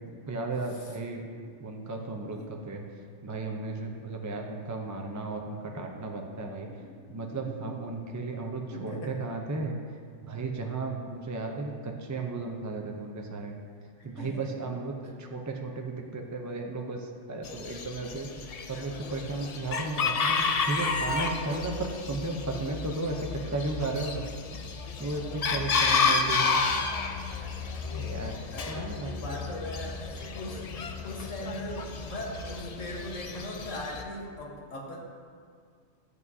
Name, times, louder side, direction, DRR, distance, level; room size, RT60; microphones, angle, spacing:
voice 1, 0.1-1.3 1.6-2.8 3.2-6.7 7.1-13.6 14.0-24.3 24.5-24.6 25.0-26.6 27.9-28.4 28.7-29.3, right 3 dB, 30° right, 1 dB, 0.3 m, -35 dB
voice 2, 6.6-7.5 8.7-9.2 14.0-14.6 25.9-26.3 28.5-30.7 31.0-35.0, left 1 dB, 90° left, -1 dB, 1.6 m, -40 dB
Chicken rooster, 17.4-34.0, left 4 dB, 60° left, 0.4 m, -31 dB
11.0 x 8.5 x 2.7 m, 2.1 s
omnidirectional pair, 1.3 m